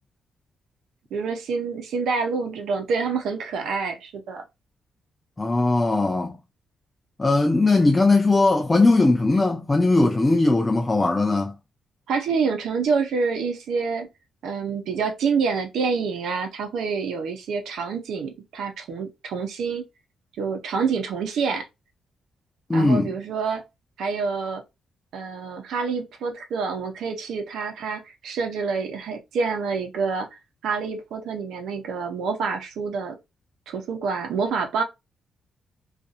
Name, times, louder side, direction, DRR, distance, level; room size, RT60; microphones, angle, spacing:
voice 1, 1.1-4.4 12.1-14.1 14.4-19.8 20.4-21.7 22.7-23.6 24.0-24.6 25.1-30.3 30.6-33.2 33.7-34.8, right 5 dB, 85° right, 0.7 m, -27 dB
voice 2, 5.4-6.4 7.2-11.5 22.7-23.1, left 2 dB, 15° left, 0.3 m, -19 dB
2.6 x 2.4 x 2.4 m
cardioid pair, 125°, 0 cm